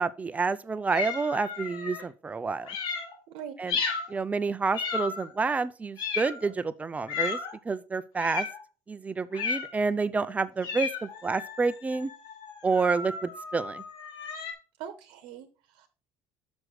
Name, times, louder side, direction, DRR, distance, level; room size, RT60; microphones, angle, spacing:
voice 1, 0.0-2.8 3.6-3.8 4.1-7.4 7.6-8.5 8.9-12.1 12.6-13.8, right 4 dB, 15° right, 0.5 m, -29 dB
sound 1, 0.9-2.0 2.6-3.1 3.7-4.1 4.7-5.4 6.0-6.5 7.1-7.6 8.2-8.6 9.3-9.8 10.6-14.5, left 5 dB, 65° left, 1.8 m, -34 dB
voice 2, 3.3-3.6 14.8-15.9, right 8 dB, 75° right, 1.0 m, -42 dB
6.2 x 6.2 x 4.9 m
cardioid pair, 120°, 8 cm